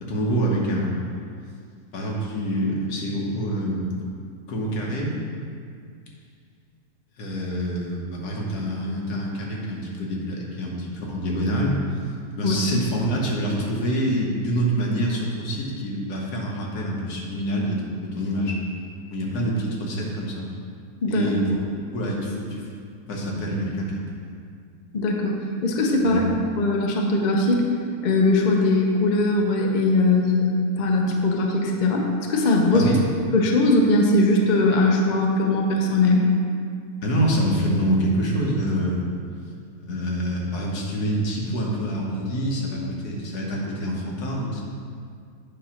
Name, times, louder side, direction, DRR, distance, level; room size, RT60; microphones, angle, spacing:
voice 1, 0.0-0.9 1.9-4.0 4.5-5.2 7.2-11.8 12.3-18.6 19.1-20.5 21.1-21.6 21.9-22.7 23.1-24.4 26.0-26.2 32.7-33.0 37.0-39.0 39.8-44.6, equal, 75° left, -2 dB, 1.6 m, -26 dB
voice 2, 12.4-12.8 21.0-21.3 24.9-25.4 25.6-26.3 26.6-27.6 28.0-32.9 33.3-36.3, left 2 dB, 50° left, 1 dB, 0.5 m, -20 dB
8.5 x 2.9 x 5.7 m, 2.2 s
omnidirectional pair, 1.7 m